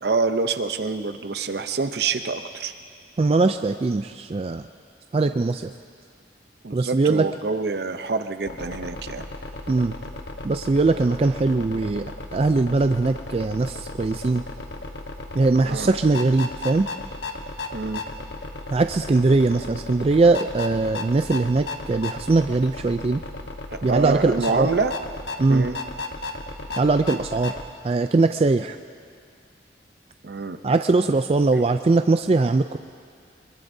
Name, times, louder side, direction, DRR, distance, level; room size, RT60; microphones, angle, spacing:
voice 1, 0.0-2.7 6.6-9.2 15.6-15.9 17.7-18.0 23.7-24.9 25.5-25.8 30.2-30.6, right 4 dB, 65° right, 9 dB, 0.7 m, -26 dB
voice 2, 3.2-4.7 5.1-5.7 6.7-7.3 9.7-9.9 10.4-14.4 15.3-16.9 18.7-23.2 23.8-24.7 25.4-25.7 26.8-27.5 27.8-28.8 30.6-32.8, right 3 dB, 35° right, 8 dB, 0.3 m, -21 dB
sound 1, 8.5-27.7, left 2 dB, 80° left, 1.1 m, -35 dB
24.5 x 22.0 x 2.7 m, 2.2 s
head